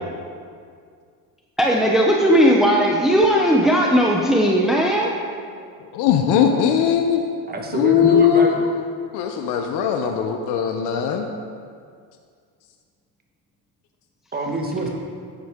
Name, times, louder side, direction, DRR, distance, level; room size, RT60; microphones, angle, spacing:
voice 1, 1.6-5.2, equal, ahead, -2 dB, 0.8 m, -17 dB
voice 2, 4.9-5.7 6.4-6.5 7.5-8.7 14.3-14.9, right 2 dB, 20° right, 1 dB, 1.6 m, -27 dB
voice 3, 5.9-7.2 7.7-8.7 9.1-11.3, left 8 dB, 70° left, 4 dB, 0.9 m, -19 dB
11.0 x 9.3 x 3.7 m, 2.2 s
cardioid pair, 115°, 42 cm